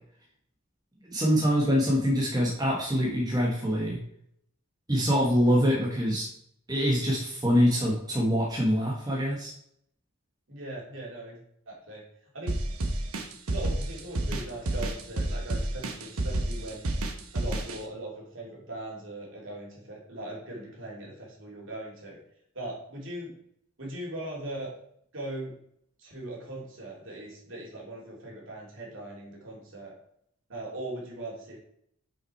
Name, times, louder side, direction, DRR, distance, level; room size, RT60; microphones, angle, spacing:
voice 1, 1.1-4.0 4.9-6.3 6.7-9.5, equal, 20° right, -3 dB, 1.3 m, -24 dB
voice 2, 10.5-11.4 11.7-12.0 12.3-12.6 13.5-16.9 17.3-22.2 22.5-23.3 23.8-24.7 25.1-25.5 26.0-29.9 30.5-31.6, right 1 dB, 60° right, -3 dB, 2.8 m, -39 dB
sound 1, 12.5-17.8, right 1 dB, 90° right, 1.0 m, -29 dB
5.9 x 5.9 x 4.5 m, 0.70 s
head